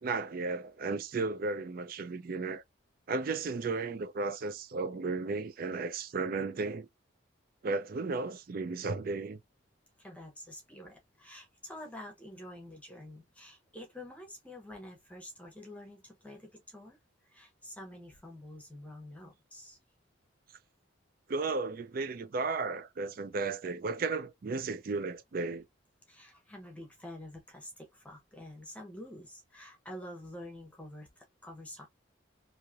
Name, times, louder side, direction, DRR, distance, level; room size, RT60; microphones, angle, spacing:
voice 1, 0.0-2.6 3.1-6.9 7.6-9.4 21.3-25.6, right 3 dB, 45° right, 0.4 m, -34 dB
voice 2, 10.0-17.0 17.3-19.8 26.1-31.9, left 1 dB, 5° left, 0.9 m, -48 dB
3.1 x 2.7 x 2.4 m
head